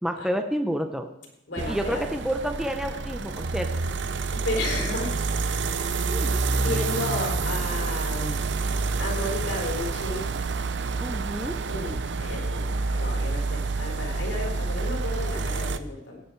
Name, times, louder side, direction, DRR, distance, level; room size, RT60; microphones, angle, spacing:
voice 1, 0.0-1.1 1.7-3.7 5.9-6.6 11.0-11.6, equal, 5° right, 5 dB, 0.8 m, -29 dB
voice 2, 1.5-2.0 4.3-5.2 5.7-6.1 6.5-8.4 9.0-10.3 11.7-16.2, left 1 dB, 80° left, 0 dB, 4.2 m, -33 dB
sound 1, 1.6-15.8, right 3 dB, 70° right, 0.7 m, -28 dB
16.5 x 9.8 x 4.7 m, 0.87 s
head